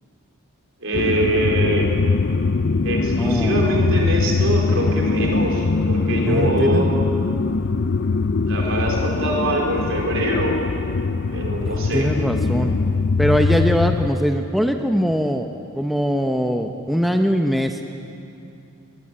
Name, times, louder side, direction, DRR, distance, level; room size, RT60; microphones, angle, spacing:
voice 1, 0.8-1.9 2.8-6.9 8.5-10.6 11.3-12.1, right 1 dB, 65° right, 0 dB, 4.6 m, -24 dB
sound 1, 0.9-14.1, left 4 dB, 55° left, 0.5 m, -22 dB
voice 2, 3.1-3.6 6.2-7.0 11.9-12.7 13.2-15.5 15.8-17.8, equal, ahead, 4 dB, 0.8 m, -21 dB
21.0 x 20.0 x 8.9 m, 2.6 s
head